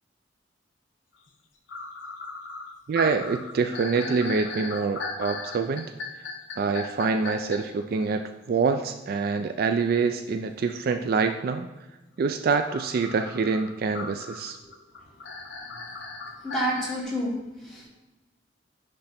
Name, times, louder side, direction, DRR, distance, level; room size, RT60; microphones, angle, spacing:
sound 1, 1.3-1.4 1.7-7.6 12.7-17.0, left 3 dB, 80° left, 0.9 m, -37 dB
voice 1, 2.9-5.9 6.6-11.7 12.2-14.6, right 4 dB, 55° right, 7 dB, 0.3 m, -26 dB
voice 2, 16.4-17.9, equal, ahead, -7 dB, 2.3 m, -30 dB
9.7 x 3.3 x 4.2 m, 1.1 s
head